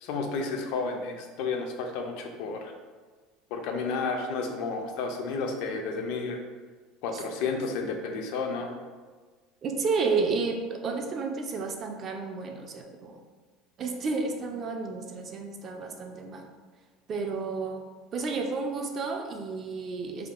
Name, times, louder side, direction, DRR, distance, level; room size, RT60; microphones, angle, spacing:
voice 1, 0.0-2.7 3.5-6.4 7.0-8.7, left 4 dB, 70° left, 3 dB, 0.4 m, -31 dB
voice 2, 9.6-13.2 13.8-16.5 17.1-17.8 18.1-20.3, right 4 dB, 35° right, 3 dB, 0.3 m, -31 dB
3.4 x 2.1 x 2.4 m, 1.4 s
supercardioid pair, 135°, 0 cm